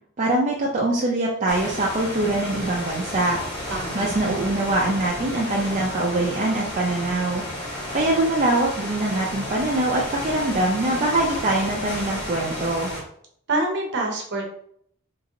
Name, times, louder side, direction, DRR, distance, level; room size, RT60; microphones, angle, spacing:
voice 1, 0.2-3.4 3.9-7.4 7.9-12.9, right 2 dB, 35° right, -4 dB, 0.5 m, -23 dB
sound 1, 1.5-13.0, left 1 dB, 20° left, 1.2 m, -32 dB
voice 2, 3.7-4.4 13.5-14.5, right 2 dB, 55° right, 1 dB, 0.8 m, -27 dB
2.9 x 2.8 x 2.6 m, 0.65 s
head